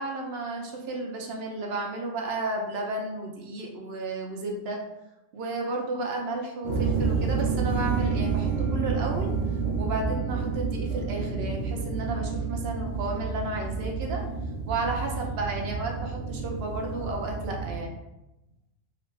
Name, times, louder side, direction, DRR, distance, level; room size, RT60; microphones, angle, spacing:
voice 1, 0.0-4.8 5.3-9.3 9.8-18.0, right 2 dB, 65° right, 1 dB, 0.8 m, -33 dB
sound 1, 6.6-17.8, right 5 dB, 90° right, 1.1 m, -29 dB
2.9 x 2.5 x 3.1 m, 0.94 s
omnidirectional pair, 1.3 m